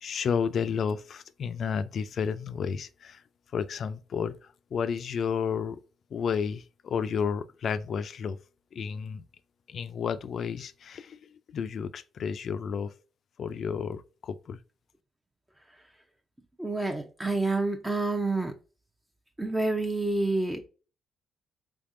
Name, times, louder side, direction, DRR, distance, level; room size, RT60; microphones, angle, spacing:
voice 1, 0.0-3.2 3.5-5.8 6.1-8.4 8.7-9.2 9.7-12.9 13.4-14.6, left 6 dB, 60° left, 0.3 m, -32 dB
voice 2, 16.6-18.5 19.4-20.7, right 2 dB, 15° right, 0.5 m, -28 dB
3.6 x 3.4 x 2.5 m
cardioid pair, 90°, 0 cm